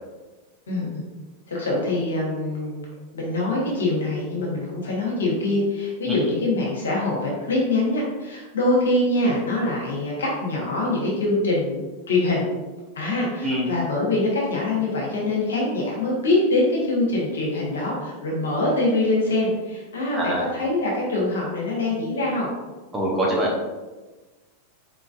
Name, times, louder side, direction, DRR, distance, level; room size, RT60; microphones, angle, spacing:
voice 1, 0.7-1.0 1.5-2.8 3.1-12.4 12.9-22.5, left 2 dB, 65° left, -3 dB, 1.3 m, -24 dB
voice 2, 20.1-20.4 22.9-23.7, equal, 10° right, -4 dB, 1.1 m, -24 dB
4.2 x 3.8 x 2.6 m, 1.2 s
figure-of-eight pair, 90°, 0 cm